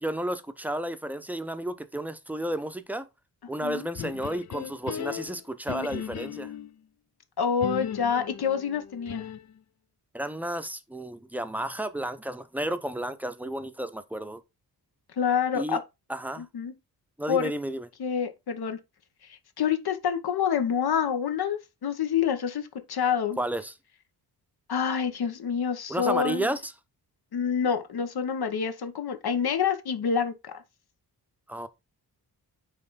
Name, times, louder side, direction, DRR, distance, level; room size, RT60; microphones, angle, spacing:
voice 1, 0.0-3.1 3.5-6.5 10.1-14.4 15.5-15.8 16.1-16.4 17.2-17.9 23.4-23.7 25.9-26.7 31.5-31.7, right 1 dB, 5° right, 0.7 m, -32 dB
sound 1, 3.9-6.7 7.6-9.6, left 9 dB, 45° left, 0.5 m, -37 dB
voice 2, 7.4-9.3 15.2-15.8 16.4-16.7 17.3-17.5 18.0-18.8 19.3-23.4 24.7-26.5 27.3-30.6, left 7 dB, 65° left, 1.1 m, -27 dB
9.1 x 3.3 x 4.1 m
wide cardioid pair, 115°, 40 cm